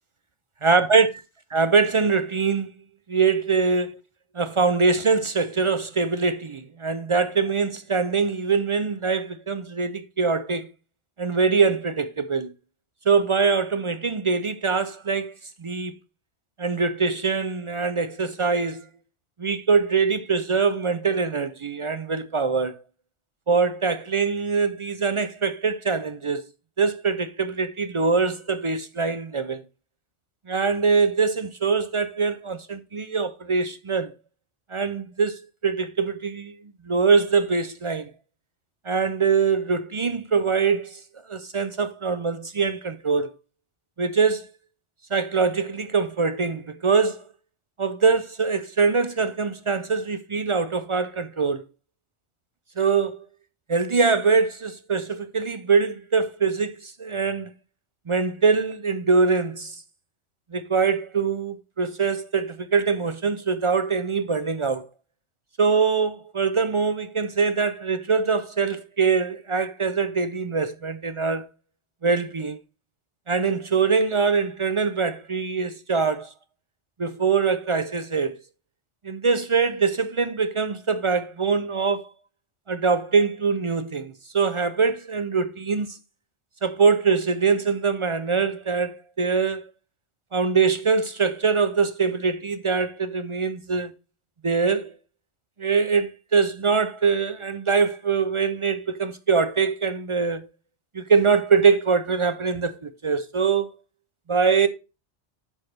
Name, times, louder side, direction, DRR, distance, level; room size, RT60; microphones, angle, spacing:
voice 1, 0.6-1.1 1.5-2.7 3.1-4.0 4.3-10.7 11.2-12.5 13.1-15.3 15.6-15.9 16.6-18.8 19.4-22.8 23.5-26.4 26.8-29.6 30.5-34.1 34.7-36.6 36.9-38.1 38.9-41.0 41.3-43.3 44.0-44.5 45.1-47.2 47.8-51.6 52.8-53.2 53.7-57.5 58.1-59.8 60.5-64.9 65.6-71.5 72.0-72.6 73.3-76.3 77.0-78.4 79.0-82.1 82.7-86.0 86.6-89.7 90.3-93.9 94.4-94.9 95.6-100.4 100.9-103.7 104.3-104.7, right 5 dB, 50° right, 0.3 m, -23 dB
8.4 x 6.2 x 3.2 m
omnidirectional pair, 1.2 m